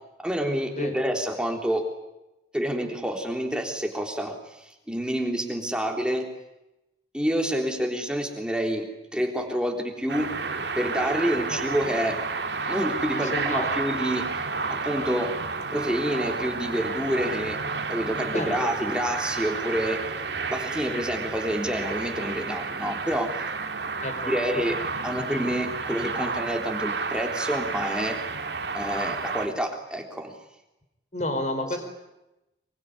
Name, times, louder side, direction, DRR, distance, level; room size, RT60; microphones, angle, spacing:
voice 1, 0.2-1.9 2.5-6.3 7.1-8.9 9.1-10.3 10.8-12.2 12.7-14.3 14.7-15.3 15.7-17.6 17.9-20.0 20.5-23.3 24.3-28.2 28.7-30.3, equal, 5° right, 3 dB, 3.5 m, -28 dB
sound 1, 10.1-29.5, right 4 dB, 75° right, 2.1 m, -31 dB
voice 2, 13.1-13.8 18.3-18.7 24.0-24.3 31.1-31.8, left 1 dB, 40° left, 7 dB, 5.0 m, -30 dB
24.5 x 23.5 x 9.8 m, 0.95 s
head